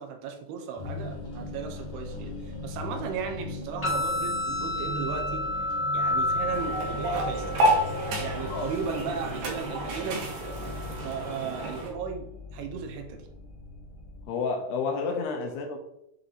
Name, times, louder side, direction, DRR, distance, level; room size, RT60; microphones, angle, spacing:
voice 1, 0.0-5.5 5.9-7.8 8.2-10.3 11.0-13.3, right 6 dB, 80° right, 4 dB, 2.7 m, -36 dB
sound 1, 0.8-14.2, left 2 dB, 50° left, 1.3 m, -39 dB
sound 2, 3.8-11.8, left 2 dB, 30° left, 0.8 m, -33 dB
sound 3, 6.5-11.9, right 1 dB, 65° right, 2.2 m, -30 dB
voice 2, 14.3-15.8, left 4 dB, 85° left, 1 dB, 2.8 m, -30 dB
8.0 x 3.1 x 4.0 m, 0.82 s
omnidirectional pair, 4.7 m